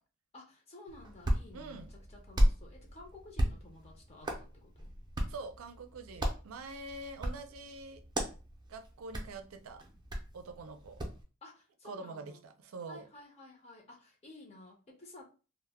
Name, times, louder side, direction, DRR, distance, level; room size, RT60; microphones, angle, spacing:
voice 1, 0.3-4.9 11.4-12.4 12.9-15.2, left 2 dB, 30° left, 0 dB, 0.6 m, -53 dB
Hands, 0.9-11.2, equal, 20° right, 0.5 m, -36 dB
voice 2, 1.5-1.9 5.3-8.0 8.7-9.8 10.3-11.0 11.8-13.1, right 3 dB, 90° right, 7 dB, 0.4 m, -45 dB
2.2 x 2.0 x 3.3 m, 0.34 s
head